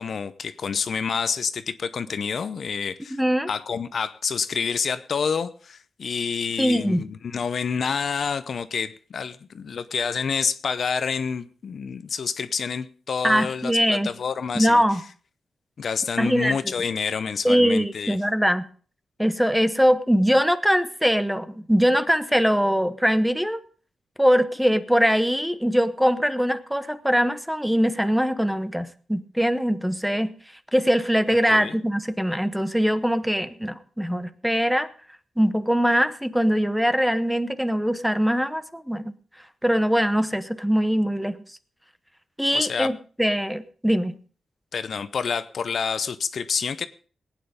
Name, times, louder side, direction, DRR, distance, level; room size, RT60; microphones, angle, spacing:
voice 1, 0.0-3.2 3.5-14.8 15.8-18.2 31.5-31.8 42.5-42.9 44.7-46.9, left 6 dB, 60° left, 13 dB, 0.7 m, -28 dB
voice 2, 3.1-3.5 6.6-7.0 13.2-14.1 14.5-15.0 16.2-16.6 17.4-18.7 19.2-23.6 24.2-30.3 30.7-34.9 35.4-39.1 39.6-41.4 42.4-44.2, equal, ahead, 12 dB, 0.9 m, -22 dB
19.0 x 9.3 x 5.1 m, 0.42 s
wide cardioid pair, 115°, 0 cm